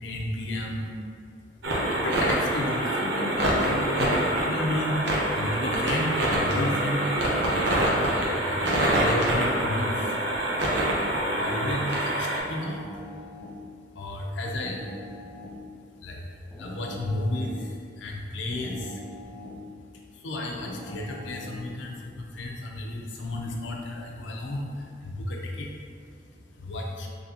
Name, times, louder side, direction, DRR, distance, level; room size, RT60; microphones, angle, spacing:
voice 1, 0.0-0.9 1.8-5.0 5.4-7.1 7.9-10.5 11.4-12.9 14.0-14.8 16.0-16.2 16.6-19.0 20.1-25.7 26.0-26.1 26.6-27.1, left 1 dB, 85° left, 0 dB, 0.5 m, -33 dB
sound 1, 1.6-12.4, right 1 dB, 70° right, 0.7 m, -25 dB
sound 2, 4.5-5.6 6.5-7.6 8.5-9.6 10.5-11.6 12.5-13.6 14.5-15.6 16.5-17.6 18.5-19.6 20.5-21.6, left 1 dB, 5° left, 0.5 m, -42 dB
3.9 x 2.8 x 2.7 m, 2.2 s
head